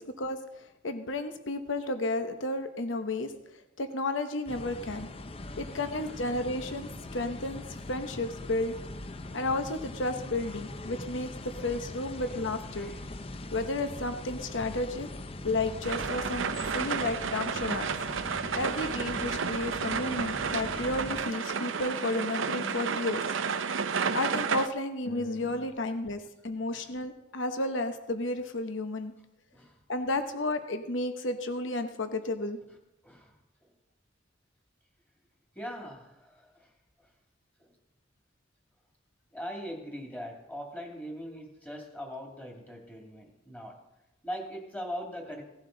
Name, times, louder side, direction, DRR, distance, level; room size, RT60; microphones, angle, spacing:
voice 1, 0.0-5.1 5.6-7.6 7.9-8.7 9.3-12.9 13.5-15.1 15.4-17.9 18.5-23.2 24.1-29.1 29.9-32.6, left 2 dB, 80° left, 8 dB, 0.9 m, -32 dB
sound 1, 4.5-21.2, left 2 dB, 30° left, 0.6 m, -41 dB
sound 2, 15.8-24.7, right 6 dB, 90° right, 0.7 m, -32 dB
sound 3, 19.3-24.3 24.8-25.7, left 4 dB, 50° left, 1.0 m, -49 dB
voice 2, 35.6-36.7 37.0-37.1 37.6-37.8 39.3-43.8 44.2-45.4, equal, 10° left, 0 dB, 2.5 m, -41 dB
17.0 x 11.5 x 3.9 m, 0.92 s
head